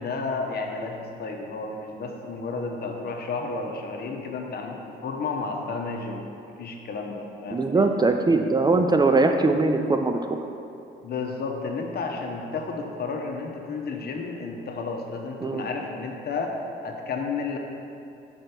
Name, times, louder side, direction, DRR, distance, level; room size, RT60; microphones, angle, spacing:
voice 1, 0.0-6.2 6.6-7.7 11.0-16.5 16.8-17.6, left 4 dB, 50° left, 1 dB, 0.9 m, -32 dB
voice 2, 7.5-10.4 15.4-15.6, right 3 dB, 20° right, 5 dB, 0.4 m, -21 dB
5.1 x 4.4 x 5.9 m, 2.6 s
cardioid pair, 90°, 20 cm